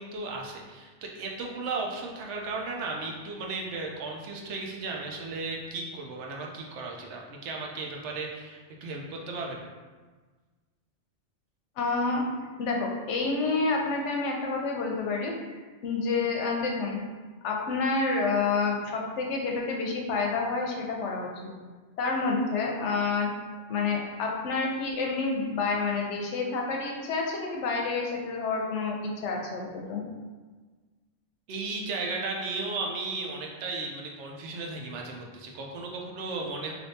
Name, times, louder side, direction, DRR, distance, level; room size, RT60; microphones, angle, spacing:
voice 1, 0.0-9.6 31.5-36.7, right 3 dB, 75° right, 0 dB, 0.9 m, -35 dB
voice 2, 11.8-12.2 12.6-15.3 15.8-17.0 17.4-21.3 22.0-23.3 23.7-30.0, left 4 dB, 80° left, 0 dB, 0.9 m, -28 dB
3.4 x 2.6 x 2.6 m, 1.4 s
omnidirectional pair, 1.2 m